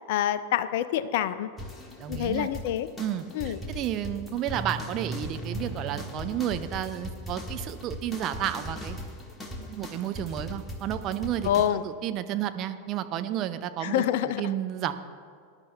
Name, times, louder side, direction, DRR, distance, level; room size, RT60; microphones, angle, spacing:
voice 1, 0.1-1.5 2.1-2.9 3.3-3.6 11.4-11.8 13.8-14.5, left 11 dB, 50° left, 14 dB, 0.4 m, -26 dB
sound 1, 1.6-11.7, equal, 10° left, 1.4 m, -38 dB
voice 2, 2.0-2.5 3.0-9.0 9.6-11.5 11.8-14.9, right 11 dB, 35° right, 9 dB, 0.6 m, -32 dB
19.5 x 10.5 x 2.2 m, 2.2 s
figure-of-eight pair, 90°, 0 cm